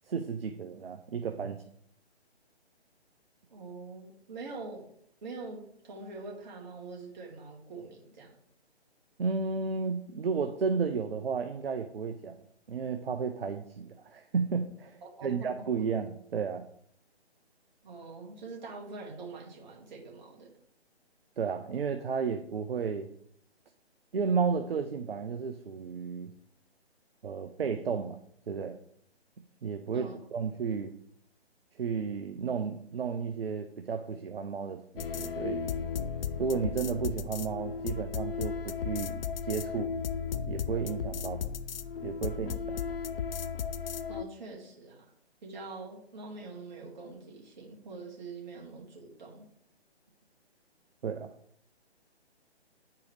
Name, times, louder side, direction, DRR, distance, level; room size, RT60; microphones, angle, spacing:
voice 1, 0.1-1.6 9.2-12.4 12.7-16.6 21.4-23.1 24.1-26.3 27.2-28.2 28.5-28.7 29.6-30.9 31.8-35.7 36.4-39.9 40.5-41.4 42.0-42.8 51.0-51.3, right 5 dB, 60° right, 6 dB, 0.7 m, -33 dB
voice 2, 3.5-4.9 5.2-8.3 15.0-15.6 17.8-20.5 29.9-30.2 44.1-45.1 45.4-49.5, right 3 dB, 45° right, -2 dB, 2.2 m, -44 dB
sound 1, 35.0-44.3, left 7 dB, 60° left, 0.5 m, -35 dB
9.5 x 4.6 x 3.3 m, 0.67 s
figure-of-eight pair, 140°, 33 cm